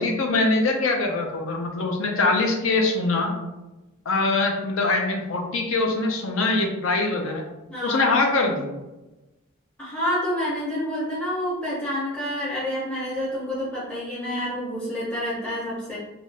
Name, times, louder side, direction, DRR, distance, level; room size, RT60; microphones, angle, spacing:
voice 1, 0.0-3.3 4.1-7.4 7.8-8.7, left 3 dB, 70° left, 2 dB, 0.5 m, -23 dB
voice 2, 7.7-8.0 9.8-16.0, equal, 5° left, -9 dB, 0.6 m, -28 dB
2.6 x 2.4 x 3.2 m, 1.0 s
head